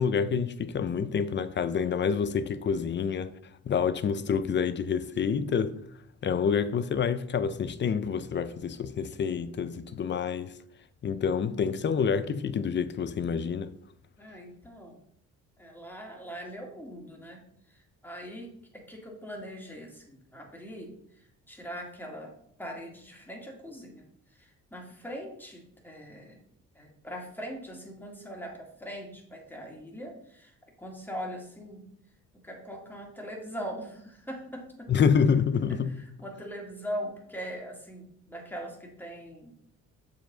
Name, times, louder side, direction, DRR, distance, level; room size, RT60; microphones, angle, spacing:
voice 1, 0.0-3.3 3.7-5.8 6.2-10.6 11.0-13.7 34.9-35.9, left 6 dB, 40° left, 0.5 m, -27 dB
voice 2, 14.2-15.0 15.6-17.4 17.7-22.3 22.6-24.0 24.3-26.4 26.8-31.9 32.3-34.9 35.7-39.6, equal, 5° left, 1.9 m, -41 dB
7.0 x 4.8 x 3.8 m
cardioid pair, 90°, 30 cm